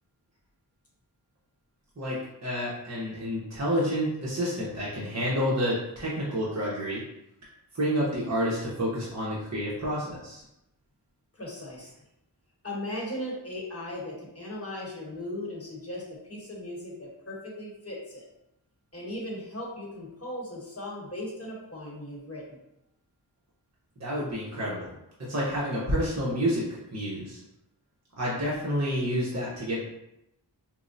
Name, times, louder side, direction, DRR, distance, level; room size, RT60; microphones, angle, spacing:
voice 1, 2.0-7.0 7.7-10.4 24.0-24.9 25.2-27.4 28.2-29.8, equal, 40° right, -7 dB, 0.9 m, -29 dB
voice 2, 11.3-11.9 12.6-18.3 18.9-22.6, left 1 dB, 35° left, -4 dB, 1.1 m, -37 dB
4.4 x 2.1 x 2.6 m, 0.84 s
wide cardioid pair, 50°, 43 cm